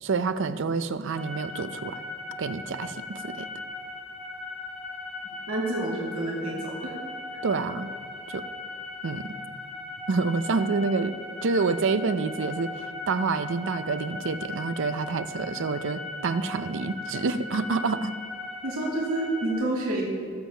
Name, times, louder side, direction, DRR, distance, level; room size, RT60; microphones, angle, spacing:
voice 1, 0.0-2.0 2.4-3.5 7.4-7.9 8.3-8.5 9.0-9.3 10.1-11.1 11.4-18.2, right 4 dB, 60° right, 12 dB, 0.5 m, -28 dB
sound 1, 1.2-19.5, left 2 dB, 5° left, 1.3 m, -38 dB
voice 2, 5.5-7.0 7.3-7.4 18.6-20.1, right 2 dB, 85° right, -4 dB, 2.3 m, -29 dB
20.5 x 7.3 x 3.4 m, 2.2 s
head